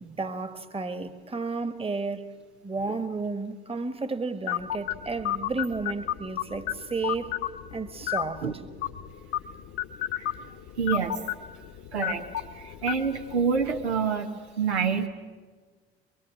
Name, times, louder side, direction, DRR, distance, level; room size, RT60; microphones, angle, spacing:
voice 1, 0.0-2.3 2.6-7.3 7.7-8.4, right 3 dB, 15° right, 1.5 m, -32 dB
sound 1, 4.5-14.0, left 12 dB, 45° left, 1.2 m, -34 dB
voice 2, 10.8-11.2 11.9-12.3 12.5-14.3 14.6-15.1, right 6 dB, 80° right, 1.4 m, -27 dB
23.5 x 23.0 x 7.5 m
figure-of-eight pair, 65°, 33 cm